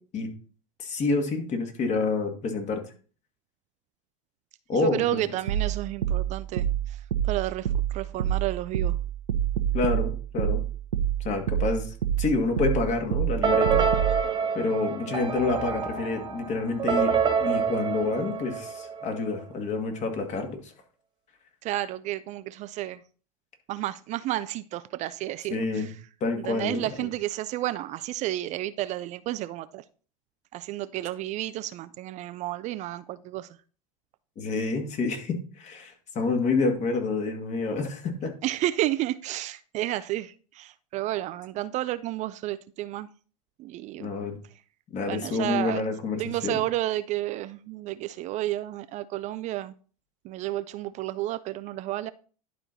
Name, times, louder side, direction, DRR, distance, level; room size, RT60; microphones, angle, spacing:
voice 1, 0.8-2.8 4.7-5.2 9.7-10.6 11.2-13.8 14.5-20.7 25.5-25.9 26.2-26.8 34.4-38.3 44.0-44.4 44.9-46.6, left 3 dB, 35° left, 2.1 m, -28 dB
voice 2, 4.7-9.0 21.6-23.0 23.7-26.0 26.4-29.8 30.5-33.5 38.4-43.1 43.6-44.1 45.1-45.8 46.2-49.7 50.2-52.1, right 15 dB, 40° right, 0.4 m, -31 dB
sound 1, 5.5-14.2, right 10 dB, 85° right, 1.0 m, -27 dB
sound 2, 13.4-19.2, right 6 dB, 25° right, 1.4 m, -27 dB
11.0 x 4.4 x 4.0 m
hypercardioid pair, 100°, 19 cm